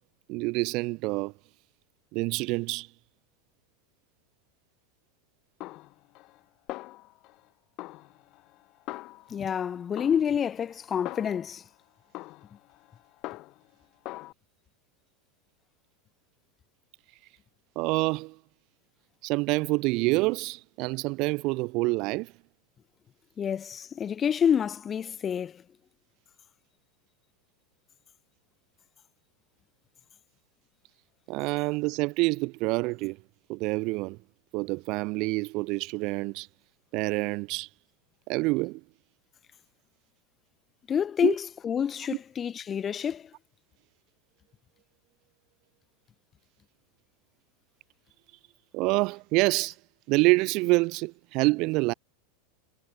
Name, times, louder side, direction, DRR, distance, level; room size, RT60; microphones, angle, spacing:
voice 1, 0.3-1.3 2.1-2.9 17.8-18.4 19.2-22.3 31.3-33.2 33.5-34.2 34.5-36.5 36.9-37.7 38.3-38.8 41.2-41.3 48.7-49.7 50.1-51.9, right 24 dB, 50° right, 0.3 m, -27 dB
Snare drum, 5.6-6.4 6.7-7.5 7.8-9.6 10.0-11.6 12.1-13.7 14.1-14.3, left 20 dB, 45° left, 7.3 m, -42 dB
voice 2, 9.3-11.6 23.4-25.6 40.9-43.3, left 8 dB, 25° left, 1.9 m, -28 dB
figure-of-eight pair, 85°, 0 cm